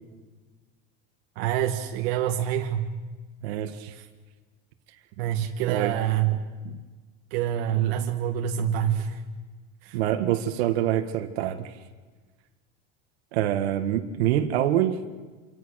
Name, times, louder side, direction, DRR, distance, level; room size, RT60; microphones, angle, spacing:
voice 1, 1.3-2.9 3.9-4.1 5.2-6.8 7.3-9.2 9.8-10.0, right 10 dB, 70° right, 3 dB, 1.7 m, -27 dB
voice 2, 3.4-3.9 5.7-6.0 9.9-11.7 13.3-15.0, right 11 dB, 85° right, 6 dB, 2.0 m, -25 dB
28.0 x 26.0 x 6.6 m, 1.4 s
supercardioid pair, 155°, 31 cm